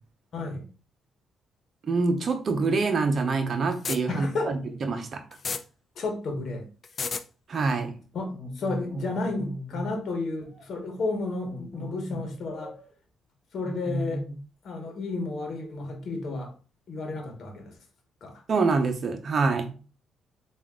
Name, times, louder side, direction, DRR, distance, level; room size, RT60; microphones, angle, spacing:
voice 1, 0.3-0.7 4.1-4.5 5.9-6.7 8.1-12.7 13.5-14.2 14.6-16.5 16.9-17.7 18.2-18.4, left 3 dB, 60° left, 1.1 m, -32 dB
voice 2, 1.8-5.2 7.5-7.9 18.5-19.7, right 4 dB, 50° right, 0.8 m, -25 dB
sound 1, 3.7-4.0 5.3-5.6 6.8-7.2, left 5 dB, 40° left, 0.4 m, -30 dB
sound 2, 8.3-9.9 10.4-10.6 11.4-12.9 13.6-14.5 14.8-15.6, equal, 5° right, 1.8 m, -37 dB
3.5 x 2.5 x 3.6 m
cardioid pair, 90°, 0 cm